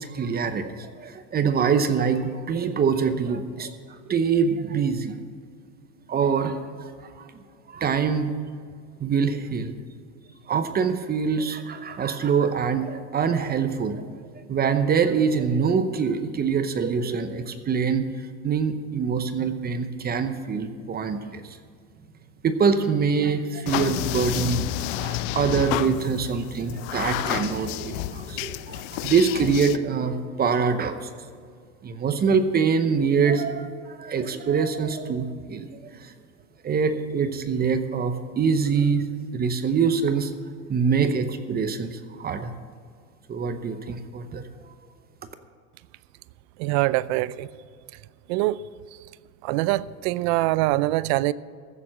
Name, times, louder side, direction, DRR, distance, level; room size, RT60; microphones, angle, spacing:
voice 1, 0.0-3.7 4.1-5.1 6.1-6.9 7.2-7.3 7.7-8.3 9.0-9.7 10.5-14.0 14.5-18.1 18.4-21.6 22.4-31.1 31.8-36.1 36.6-40.3 40.7-42.5 43.3-44.4, right 6 dB, 20° right, 0.8 m, -24 dB
sound 1, 23.7-29.8, left 14 dB, 50° left, 0.7 m, -30 dB
voice 2, 46.6-47.5 48.3-48.6 49.4-51.3, right 18 dB, 45° right, 0.5 m, -23 dB
15.0 x 7.1 x 7.6 m
supercardioid pair, 120°, 47 cm